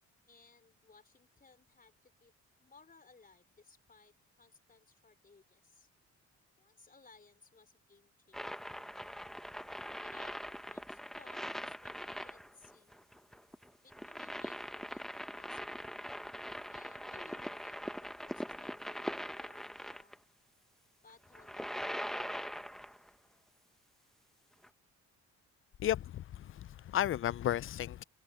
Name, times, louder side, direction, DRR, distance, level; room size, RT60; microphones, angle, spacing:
voice 1, 0.3-2.3 2.6-5.9 6.6-9.3 10.0-12.9 13.8-16.0 16.7-20.1 21.0-22.5, left 4 dB, 30° left, 4.2 m, -62 dB
sound 1, 8.3-20.2 21.2-23.1 24.6-24.7, equal, ahead, 1.1 m, -42 dB
voice 2, 25.8-28.0, left 12 dB, 45° left, 0.4 m, -34 dB
cardioid pair, 90°, 30 cm